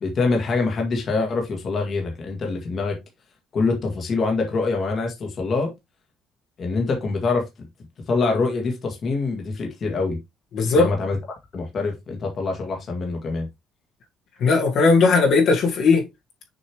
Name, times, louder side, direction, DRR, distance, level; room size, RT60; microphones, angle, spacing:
voice 1, 0.0-3.0 3.5-5.7 6.6-7.5 8.1-10.2 10.7-11.2 11.5-13.5, left 3 dB, 35° left, 1.8 m, -24 dB
voice 2, 10.5-10.9 14.4-16.0, left 4 dB, 50° left, 1.9 m, -17 dB
6.8 x 5.4 x 3.0 m
cardioid pair, 165°, 0 cm